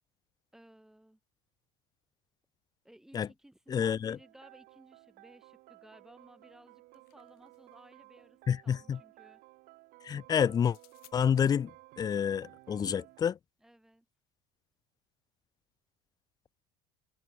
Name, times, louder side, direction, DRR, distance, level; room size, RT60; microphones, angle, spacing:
voice 1, 0.5-1.2 2.8-9.4 13.6-14.1, right 1 dB, 5° right, 4.5 m, -58 dB
voice 2, 3.7-4.2 8.5-9.0 10.0-10.8 11.1-11.7 12.0-13.4, left 8 dB, 20° left, 0.7 m, -28 dB
sound 1, 4.2-13.2, right 21 dB, 60° right, 7.4 m, -57 dB
sound 2, 6.6-7.9 10.6-11.2, left 21 dB, 60° left, 4.8 m, -62 dB
cardioid pair, 165°, 17 cm